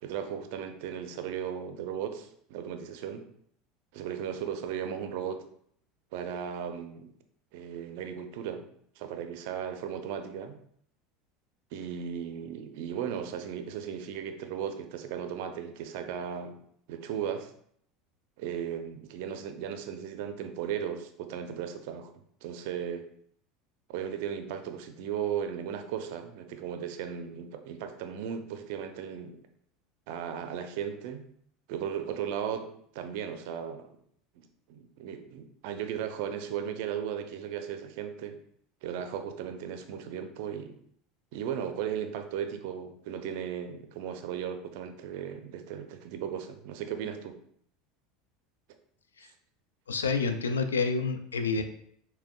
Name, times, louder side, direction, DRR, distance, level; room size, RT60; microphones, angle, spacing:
voice 1, 0.0-3.3 3.9-5.4 6.1-7.1 7.5-8.7 9.0-10.6 11.7-16.6 16.9-17.5 18.4-22.1 22.4-23.0 23.9-29.4 30.1-31.3 31.7-32.7 32.9-33.9 34.4-38.4 38.8-40.8 41.3-47.4, right 8 dB, 65° right, 7 dB, 0.4 m, -36 dB
voice 2, 49.9-51.6, left 4 dB, 90° left, 8 dB, 0.3 m, -28 dB
5.9 x 2.1 x 2.2 m, 0.65 s
hypercardioid pair, 80°, 0 cm